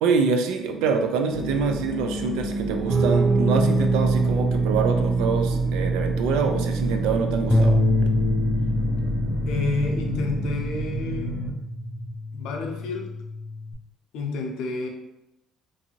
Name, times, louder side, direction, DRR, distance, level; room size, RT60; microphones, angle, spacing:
voice 1, 0.0-7.8, right 5 dB, 90° right, 5 dB, 0.4 m, -25 dB
sound 1, 1.3-11.5, equal, 10° right, 1.0 m, -30 dB
Guitar, 2.9-12.2, right 4 dB, 35° right, 0.6 m, -26 dB
Bass guitar, 7.5-13.7, left 2 dB, 15° left, 0.4 m, -26 dB
voice 2, 9.5-11.4 12.3-13.1 14.1-14.9, left 3 dB, 80° left, 1 dB, 0.6 m, -29 dB
2.6 x 2.6 x 2.8 m, 0.89 s
cardioid pair, 120°, 0 cm